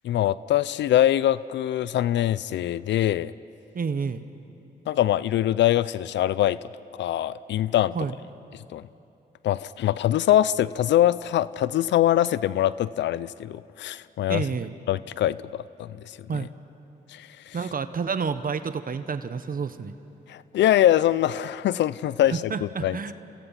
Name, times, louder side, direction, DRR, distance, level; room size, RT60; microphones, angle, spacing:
voice 1, 0.0-3.3 4.9-6.6 6.9-7.9 8.7-8.8 9.4-14.4 14.9-16.2 17.1-17.6 20.3-23.0, left 12 dB, 80° left, 18 dB, 0.5 m, -23 dB
voice 2, 3.7-4.3 7.9-8.2 14.3-14.8 16.3-16.5 17.5-20.0 22.3-23.1, right 5 dB, 50° right, 11 dB, 1.2 m, -29 dB
30.0 x 27.5 x 5.9 m, 3.0 s
supercardioid pair, 55°, 18 cm